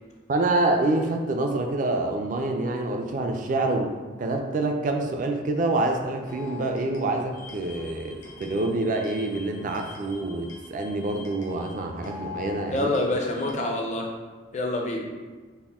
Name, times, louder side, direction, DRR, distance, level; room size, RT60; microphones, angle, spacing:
voice 1, 0.3-3.9 4.2-12.9, right 2 dB, 40° right, 4 dB, 0.3 m, -26 dB
sound 1, 6.3-13.5, left 5 dB, 75° left, 0.7 m, -44 dB
voice 2, 12.7-14.1 14.5-15.0, left 2 dB, 35° left, 0 dB, 0.5 m, -26 dB
4.1 x 2.1 x 3.5 m, 1.4 s
head